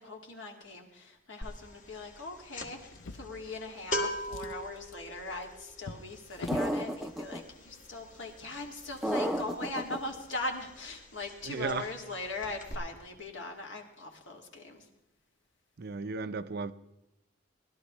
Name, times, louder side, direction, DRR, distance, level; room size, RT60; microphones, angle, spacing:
voice 1, 0.0-14.9, left 2 dB, 65° left, 2.1 m, -40 dB
sound 1, 1.4-1.7 1.9-10.5 10.8-11.0 11.3-12.1 12.4-12.7, left 1 dB, 40° left, 1.7 m, -39 dB
Drawer open or close, 2.9-3.9 4.2-6.8 7.7-7.8 8.2-8.3, left 3 dB, 85° left, 0.6 m, -44 dB
sound 2, 6.5-7.4 9.0-10.0, equal, ahead, 0.6 m, -31 dB
voice 2, 11.4-11.9 15.8-16.7, right 4 dB, 55° right, 0.5 m, -35 dB
20.0 x 12.5 x 3.1 m
head